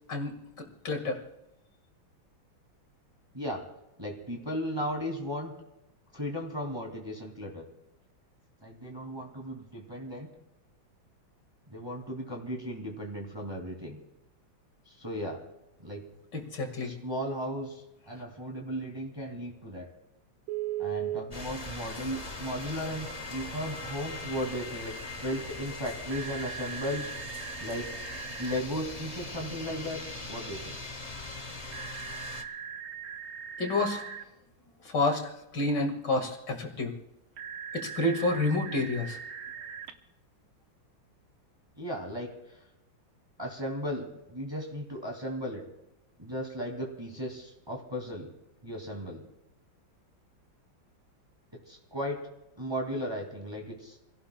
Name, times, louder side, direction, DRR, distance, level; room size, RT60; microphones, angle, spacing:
voice 1, 0.1-1.2 16.3-16.9 33.6-34.1 34.8-36.9 37.7-39.2, left 2 dB, 60° left, 3 dB, 2.5 m, -29 dB
voice 2, 4.0-5.5 6.1-7.6 8.6-10.3 11.7-14.0 14.9-15.4 15.8-16.0 16.8-19.9 20.8-24.9 25.2-27.1 27.6-28.0 28.4-30.0 30.3-30.8 41.8-42.3 43.4-45.6 46.2-48.3 48.6-49.3 51.7-52.2 52.6-54.0, equal, 15° right, 1 dB, 2.2 m, -36 dB
Telephone, 20.5-21.2 23.1-28.6 31.7-34.2 37.4-39.9, right 8 dB, 85° right, 1.8 m, -40 dB
sound 1, 21.3-32.4, left 2 dB, 25° left, 1.0 m, -41 dB
28.5 x 17.0 x 2.2 m, 0.91 s
omnidirectional pair, 2.2 m